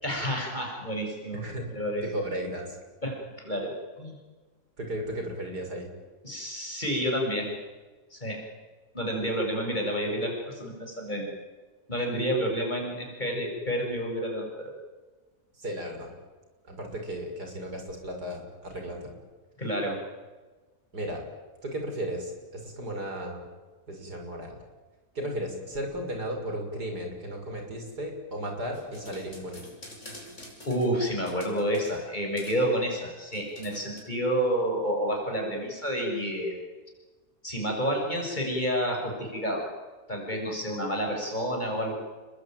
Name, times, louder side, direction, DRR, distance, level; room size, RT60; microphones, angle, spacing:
voice 1, 0.0-1.4 1.7-2.1 3.0-4.1 6.2-7.5 8.1-8.4 8.9-11.3 11.9-14.7 19.6-20.0 30.7-36.6 37.4-39.7 40.1-42.0, equal, 25° left, 0 dB, 6.9 m, -29 dB
voice 2, 2.0-2.8 4.8-5.9 15.6-16.1 16.6-19.1 20.9-21.2 21.6-23.4 23.9-24.6 25.1-29.6, equal, 85° right, 3 dB, 6.6 m, -35 dB
sound 1, 28.7-32.0 32.4-32.7 33.3-34.0, left 1 dB, 45° left, 6.4 m, -47 dB
29.0 x 22.0 x 9.2 m, 1.3 s
omnidirectional pair, 1.7 m